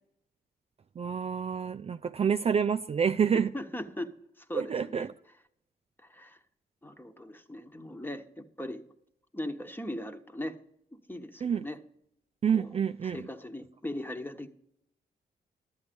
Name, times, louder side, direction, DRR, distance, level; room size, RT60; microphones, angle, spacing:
voice 1, 1.0-3.5 4.5-5.1 11.4-11.6 12.4-13.2, right 7 dB, 35° right, 0.4 m, -28 dB
voice 2, 3.3-5.1 6.0-6.4 6.8-8.8 9.3-10.6 10.9-11.8 12.5-12.7 13.0-14.5, left 1 dB, 10° left, 1.1 m, -39 dB
11.5 x 8.1 x 5.2 m
cardioid pair, 60°, 17 cm